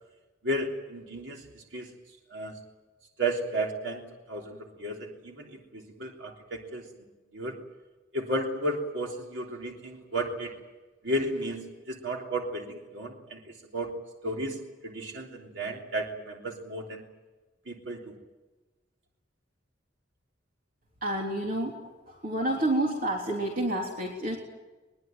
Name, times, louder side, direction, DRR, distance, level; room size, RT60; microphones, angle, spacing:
voice 1, 0.4-1.9 2.3-2.5 3.2-6.8 7.3-7.6 8.1-10.5 11.0-11.6 11.9-13.4 13.7-13.9 14.2-17.0 17.7-18.1, right 1 dB, 75° right, 0 dB, 3.3 m, -33 dB
voice 2, 21.0-24.4, right 1 dB, 45° right, -1 dB, 3.5 m, -29 dB
22.5 x 22.0 x 9.2 m, 1.2 s
head